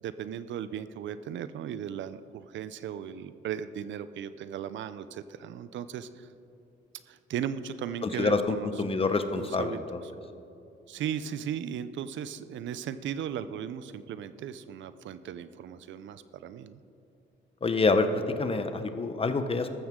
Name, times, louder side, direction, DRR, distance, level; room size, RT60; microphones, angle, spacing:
voice 1, 0.0-6.3 7.1-8.7 9.3-9.8 10.9-16.8, right 9 dB, 70° right, 13 dB, 0.5 m, -37 dB
voice 2, 8.0-10.0 17.6-19.7, left 3 dB, 30° left, 9 dB, 0.9 m, -27 dB
13.5 x 13.0 x 3.7 m, 2.7 s
cardioid pair, 90°, 20 cm